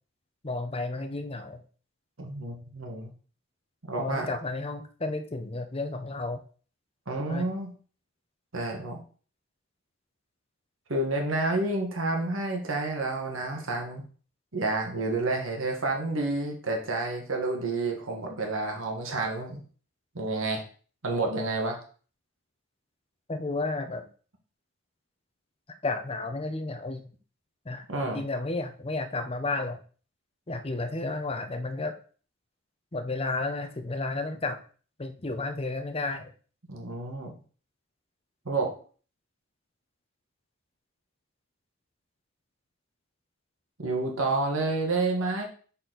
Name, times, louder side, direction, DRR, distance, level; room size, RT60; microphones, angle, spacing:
voice 1, 0.4-1.6 4.0-6.4 7.3-7.5 23.3-24.1 25.8-27.0 27.6-27.9 28.1-29.8 30.5-31.9 32.9-34.6 35.0-36.3, left 2 dB, 25° left, 8 dB, 0.7 m, -32 dB
voice 2, 2.2-3.1 3.9-4.3 7.1-7.7 8.5-9.0 10.9-14.0 14.5-19.6 20.1-20.6 21.0-21.8 27.9-28.2 36.7-37.3 38.4-38.7 43.8-45.4, right 2 dB, 65° right, 1 dB, 1.4 m, -29 dB
6.4 x 4.2 x 3.9 m, 0.41 s
head